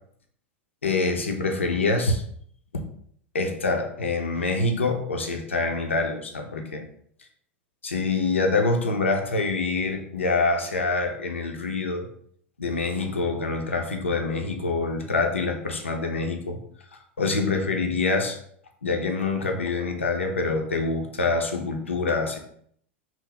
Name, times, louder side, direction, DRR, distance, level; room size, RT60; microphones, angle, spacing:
voice 1, 0.8-2.2 3.3-6.8 7.8-12.1 12.6-16.6 17.2-18.4 18.8-22.4, left 3 dB, 85° left, 3 dB, 0.5 m, -25 dB
2.9 x 2.0 x 3.9 m, 0.65 s
figure-of-eight pair, 90°, 7 cm